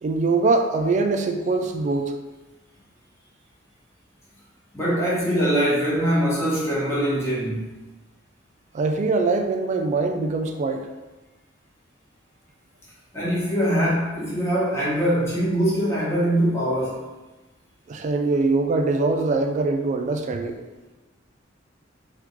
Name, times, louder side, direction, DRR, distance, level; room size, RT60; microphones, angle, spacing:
voice 1, 0.0-2.1 8.7-10.9 17.9-20.6, right 3 dB, 40° right, 5 dB, 0.3 m, -23 dB
voice 2, 4.7-7.7 13.1-17.0, equal, 15° left, -8 dB, 1.0 m, -23 dB
3.5 x 2.4 x 3.0 m, 1.1 s
head